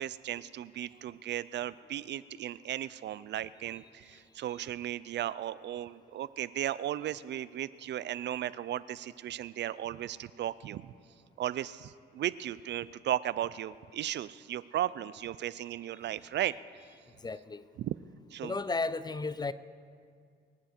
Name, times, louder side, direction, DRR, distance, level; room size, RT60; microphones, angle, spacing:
voice 1, 0.0-10.9 11.4-16.6 17.8-17.9 18.3-18.5, right 12 dB, 60° right, 18 dB, 0.4 m, -35 dB
voice 2, 17.2-17.6 18.4-19.5, left 3 dB, 20° left, 15 dB, 0.5 m, -33 dB
24.0 x 9.3 x 4.5 m, 2.1 s
cardioid pair, 90°, 20 cm